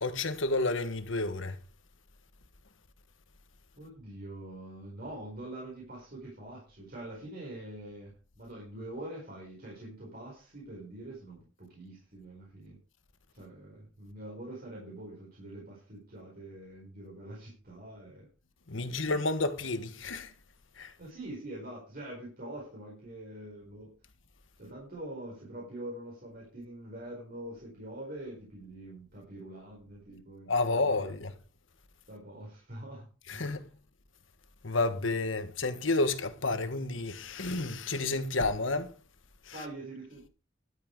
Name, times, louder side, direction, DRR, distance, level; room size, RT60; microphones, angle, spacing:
voice 1, 0.0-1.6 18.7-20.3 20.8-20.9 30.5-31.3 33.3-33.7 34.6-38.9 39.4-39.6, left 2 dB, 75° left, 1.5 m, -30 dB
voice 2, 3.8-12.8 13.3-18.3 18.8-19.2 21.0-23.9 24.6-31.1 32.1-33.5 39.5-40.3, right 1 dB, 50° right, 4.7 m, -45 dB
12.0 x 9.0 x 4.7 m
head